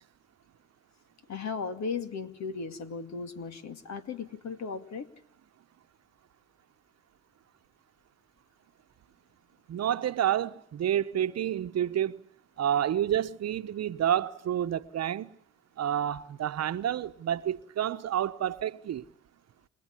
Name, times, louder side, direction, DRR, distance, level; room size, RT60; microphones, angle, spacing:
voice 1, 1.3-5.1, left 5 dB, 65° left, 2.3 m, -36 dB
voice 2, 9.7-12.2 12.6-15.4 15.8-19.0, right 10 dB, 60° right, 1.0 m, -29 dB
29.5 x 16.0 x 9.8 m
supercardioid pair, 60°, 29 cm